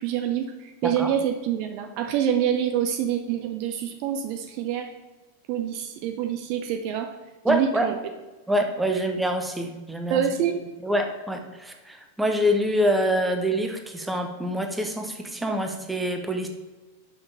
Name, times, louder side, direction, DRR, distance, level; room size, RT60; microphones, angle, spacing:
voice 1, 0.0-4.9 5.5-7.1 7.5-8.0 10.1-10.6, right 9 dB, 45° right, 6 dB, 0.6 m, -26 dB
voice 2, 0.8-1.1 7.4-7.9 8.5-10.2 10.8-16.5, equal, 5° right, 5 dB, 1.0 m, -25 dB
6.3 x 5.9 x 4.9 m, 1.2 s
figure-of-eight pair, 90°, 0 cm